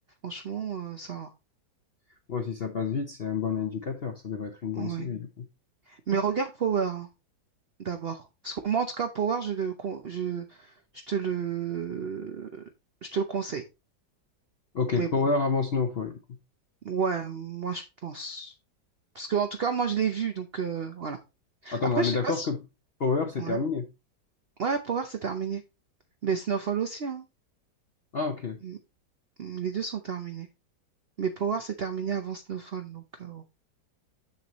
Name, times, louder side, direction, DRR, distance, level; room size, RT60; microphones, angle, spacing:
voice 1, 0.2-1.3 4.8-5.1 5.9-7.1 7.8-10.7 11.1-12.6 13.0-13.6 15.0-15.1 16.8-18.5 19.1-21.2 21.6-22.5 23.4-23.6 24.6-25.6 26.2-27.2 28.6-28.8 29.4-30.5 31.2-33.4, right 6 dB, 65° right, 0.5 m, -31 dB
voice 2, 2.3-5.4 14.7-16.2 21.7-22.6 23.0-23.9 28.1-28.6, left 4 dB, 55° left, 0.6 m, -28 dB
7.1 x 6.8 x 3.0 m
omnidirectional pair, 2.0 m